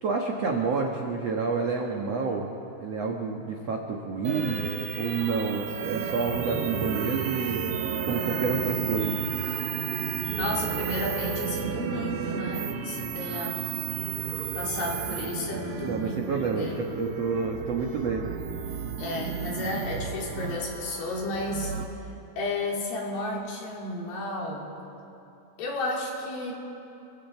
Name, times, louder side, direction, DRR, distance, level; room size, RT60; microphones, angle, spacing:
voice 1, 0.0-4.7 4.9-7.7 8.0-9.3 15.8-18.4, right 4 dB, 85° right, 0 dB, 1.4 m, -29 dB
sound 1, 4.2-21.8, right 7 dB, 65° right, 2.4 m, -32 dB
voice 2, 10.3-13.6 14.1-14.3 14.5-16.8 19.0-21.7 22.4-24.7 25.6-26.5, left 2 dB, 60° left, -2 dB, 4.8 m, -32 dB
29.5 x 24.0 x 4.5 m, 3.0 s
omnidirectional pair, 5.2 m